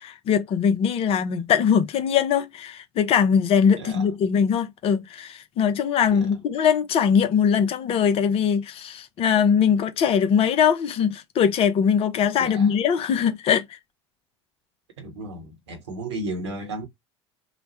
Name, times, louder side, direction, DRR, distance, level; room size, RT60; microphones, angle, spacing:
voice 1, 0.0-13.8, left 7 dB, 40° left, 0.6 m, -21 dB
voice 2, 3.7-4.1 6.1-6.3 12.4-12.7 15.0-16.9, right 2 dB, 70° right, 1.0 m, -34 dB
3.0 x 2.1 x 2.7 m
figure-of-eight pair, 65°, 15 cm